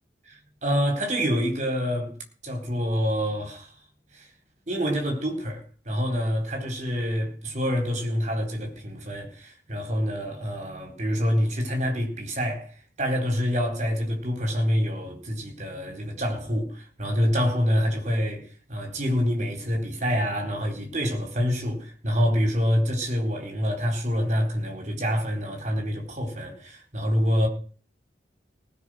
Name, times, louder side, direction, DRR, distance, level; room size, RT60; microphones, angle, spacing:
voice 1, 0.3-2.1 2.4-3.7 4.1-4.3 4.7-27.5, equal, 40° right, 4.0 m, -26 dB
19.0 x 6.5 x 6.4 m
head